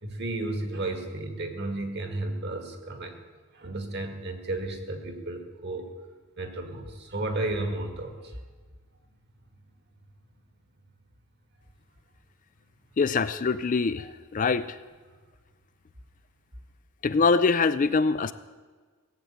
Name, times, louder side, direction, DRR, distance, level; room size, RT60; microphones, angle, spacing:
voice 1, 0.0-3.2 3.5-5.9 6.4-8.4, right 2 dB, 50° right, 5 dB, 1.9 m, -33 dB
voice 2, 13.0-14.1 14.3-14.8 17.0-18.3, left 4 dB, 35° left, 13 dB, 0.4 m, -23 dB
17.5 x 7.8 x 8.5 m, 1.4 s
head